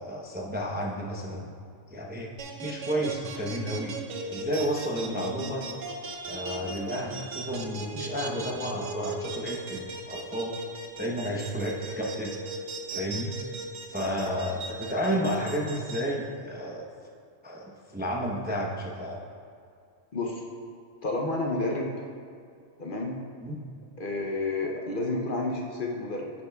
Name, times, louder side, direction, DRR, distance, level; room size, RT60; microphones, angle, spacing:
voice 1, 0.0-1.5 1.9-2.3 2.6-3.9 4.3-5.7 6.2-10.5 11.0-12.3 12.9-13.3 13.9-16.9 17.4-19.2 23.4-23.6, equal, 10° right, -2 dB, 0.6 m, -31 dB
sound 1, 2.4-16.0, right 3 dB, 75° right, 1.1 m, -37 dB
voice 2, 20.1-20.4 21.0-22.0 22.8-23.1 24.0-26.3, left 2 dB, 50° left, 0 dB, 0.8 m, -30 dB
10.0 x 8.5 x 2.3 m, 2.3 s
omnidirectional pair, 1.3 m